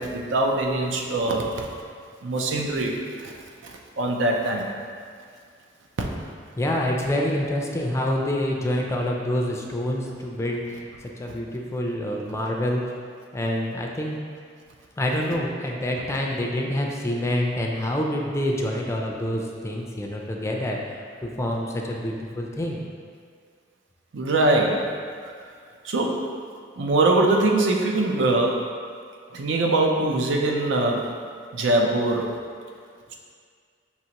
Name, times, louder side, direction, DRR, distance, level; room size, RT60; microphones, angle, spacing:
voice 1, 0.0-1.5 2.2-3.3 3.6-4.7 6.0-6.1 24.1-24.8 25.8-26.3 26.8-28.7 29.3-31.0 31.5-32.4, right 2 dB, 80° right, 1 dB, 0.5 m, -22 dB
voice 2, 6.6-10.8 11.2-12.9 13.3-14.2 15.0-22.8, left 1 dB, 15° left, 0 dB, 0.4 m, -27 dB
5.5 x 2.9 x 2.9 m, 2.1 s
head